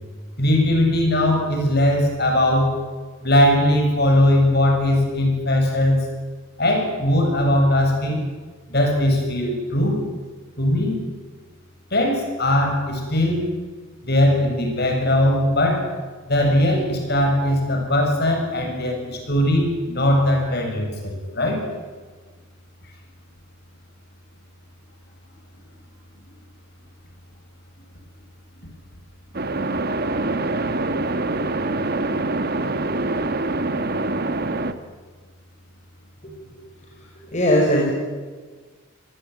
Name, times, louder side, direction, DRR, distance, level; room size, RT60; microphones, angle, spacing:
voice 1, 0.4-2.8 3.2-6.1 6.6-8.2 8.7-10.0 10.6-11.0 11.9-13.5 14.0-15.9 16.3-21.6, left 1 dB, 50° left, 3 dB, 7.2 m, -19 dB
sound 1, 29.3-34.7, right 2 dB, 50° right, 1.5 m, -24 dB
voice 2, 36.2-36.6 37.0-37.9, equal, 35° left, -2 dB, 5.5 m, -21 dB
27.5 x 19.5 x 9.3 m, 1.4 s
head